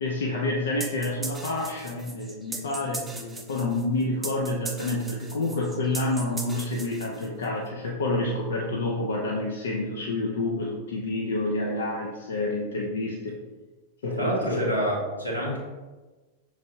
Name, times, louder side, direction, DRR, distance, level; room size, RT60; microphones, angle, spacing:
voice 1, 0.0-13.4 14.0-14.8, left 2 dB, 65° left, -1 dB, 0.5 m, -28 dB
sound 1, 0.8-7.5, right 3 dB, 10° right, 0.5 m, -38 dB
voice 2, 14.1-15.6, equal, 90° left, -6 dB, 1.4 m, -27 dB
6.1 x 3.3 x 2.7 m, 1.2 s
figure-of-eight pair, 90°, 0 cm